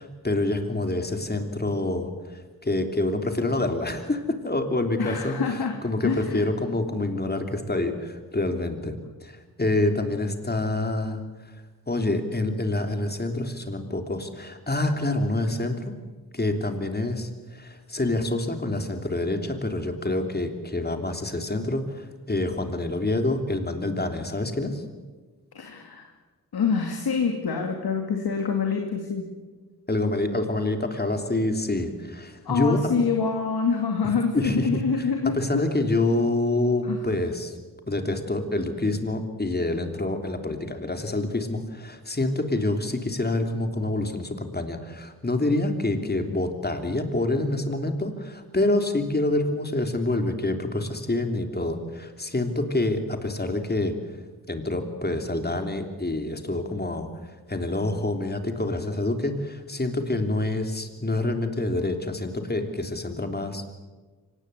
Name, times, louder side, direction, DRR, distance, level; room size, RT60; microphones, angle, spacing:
voice 1, 0.0-8.9 9.2-11.5 11.9-15.9 16.3-24.8 29.9-32.9 34.0-34.8 35.3-37.5 37.9-53.9 54.5-63.7, left 2 dB, 25° left, 6 dB, 3.2 m, -27 dB
voice 2, 5.0-5.7 6.0-6.5 25.5-26.1 26.5-29.3 32.5-35.3 36.8-37.0, left 5 dB, 80° left, 3 dB, 2.5 m, -26 dB
25.0 x 19.0 x 8.3 m, 1.3 s
cardioid pair, 70°, 37 cm